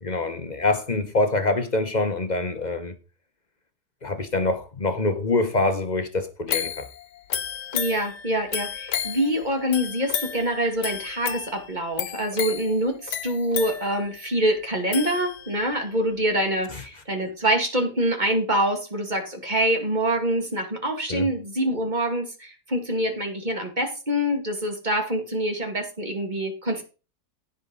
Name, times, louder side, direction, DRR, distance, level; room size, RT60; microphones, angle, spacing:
voice 1, 0.0-2.9 4.0-6.8 21.1-21.3, left 2 dB, 30° left, 0.9 m, -25 dB
sound 1, 6.5-15.7 16.2-16.3, left 9 dB, 75° left, 1.5 m, -33 dB
voice 2, 7.7-26.8, right 1 dB, 25° right, 2.1 m, -25 dB
15.5 x 5.3 x 3.9 m
omnidirectional pair, 1.8 m